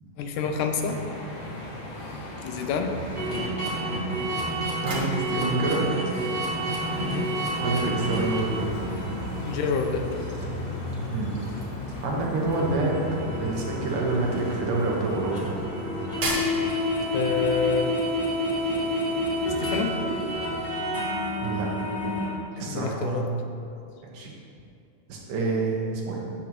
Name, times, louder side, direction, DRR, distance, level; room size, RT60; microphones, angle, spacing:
voice 1, 0.2-1.0 2.4-2.9 7.0-7.3 9.4-10.3 17.1-17.9 19.6-19.9 22.6-23.3, left 6 dB, 80° left, 5 dB, 2.2 m, -27 dB
sound 1, 0.8-20.7, left 1 dB, 55° left, 0.8 m, -37 dB
sound 2, 3.1-11.0 11.4-11.6 12.1-22.4, equal, 15° left, 2.1 m, -30 dB
sound 3, 4.5-17.5, right 1 dB, 50° right, 1.3 m, -40 dB
voice 2, 4.8-6.2 7.6-8.7 11.1-11.4 12.0-15.6 21.4-21.7 22.6-23.5 24.1-24.3 25.1-26.3, right 2 dB, 80° right, -2 dB, 3.0 m, -27 dB
13.0 x 8.0 x 3.1 m, 2.5 s
omnidirectional pair, 3.7 m